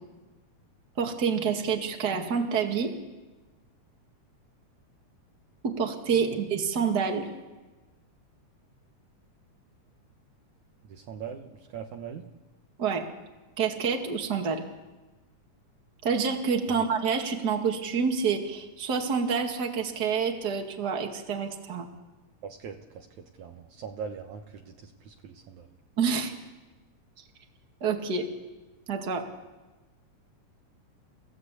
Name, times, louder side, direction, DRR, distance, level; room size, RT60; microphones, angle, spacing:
voice 1, 1.0-2.9 5.6-7.3 12.8-13.1 13.6-14.6 16.0-21.9 26.0-26.3 27.2-27.3 27.8-28.3 28.9-29.3, right 6 dB, 35° right, 3 dB, 2.3 m, -28 dB
voice 2, 10.9-12.3 16.7-16.8 22.4-23.1 23.4-25.7, right 7 dB, 65° right, 3 dB, 2.4 m, -41 dB
30.0 x 16.0 x 8.3 m, 1.2 s
omnidirectional pair, 3.8 m